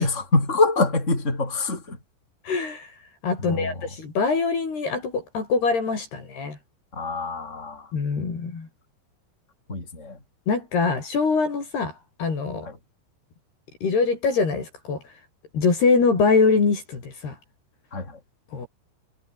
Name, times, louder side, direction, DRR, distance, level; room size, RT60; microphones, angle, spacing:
voice 1, 0.0-2.0 3.4-3.9 6.9-7.9 9.7-10.2 12.6-12.8 17.9-18.2, left 3 dB, 15° left, 6.7 m, -25 dB
voice 2, 2.5-2.9 3.2-6.6 7.9-8.7 10.5-11.9 12.2-12.7 13.8-15.0 15.5-17.4 18.5-18.7, left 4 dB, 50° left, 7.5 m, -23 dB
omnidirectional pair, 5.9 m